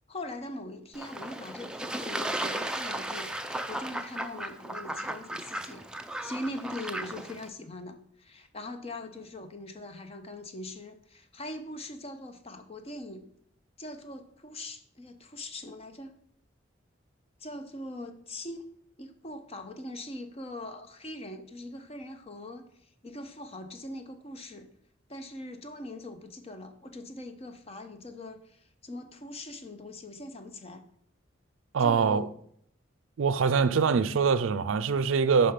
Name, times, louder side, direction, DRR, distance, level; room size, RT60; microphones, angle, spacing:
voice 1, 0.1-5.8 6.2-13.3 13.8-16.2 17.4-18.7 19.0-24.7 25.1-30.8 31.8-32.2, left 1 dB, 30° left, 0.7 m, -41 dB
Fowl / Bird / Water, 0.9-7.5, right 1 dB, 5° right, 0.4 m, -35 dB
voice 2, 31.7-32.3 33.2-35.5, right 5 dB, 80° right, 0.4 m, -24 dB
5.6 x 5.0 x 5.8 m
head